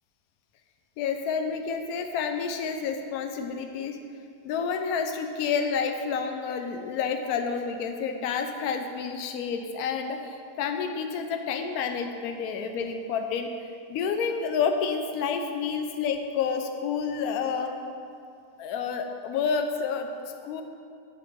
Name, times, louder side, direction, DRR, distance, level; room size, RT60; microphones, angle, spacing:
voice 1, 1.0-4.0 4.4-13.5 13.9-17.9 18.6-20.6, left 6 dB, 70° left, 6 dB, 1.0 m, -29 dB
8.4 x 4.4 x 3.5 m, 2.4 s
omnidirectional pair, 1.8 m